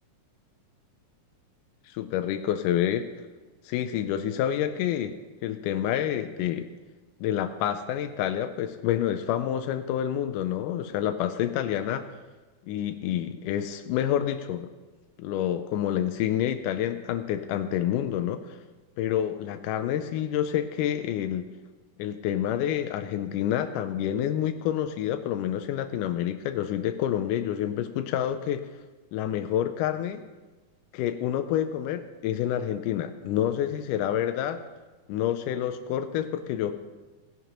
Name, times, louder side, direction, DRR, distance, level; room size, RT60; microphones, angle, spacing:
voice 1, 1.9-3.1 3.7-5.2 5.4-6.7 7.2-12.1 12.7-14.7 15.2-18.6 19.0-21.5 22.0-28.7 29.1-30.2 30.9-34.6 35.1-36.7, left 10 dB, 85° left, 8 dB, 2.1 m, -28 dB
16.5 x 11.0 x 2.9 m, 1.2 s
omnidirectional pair, 3.7 m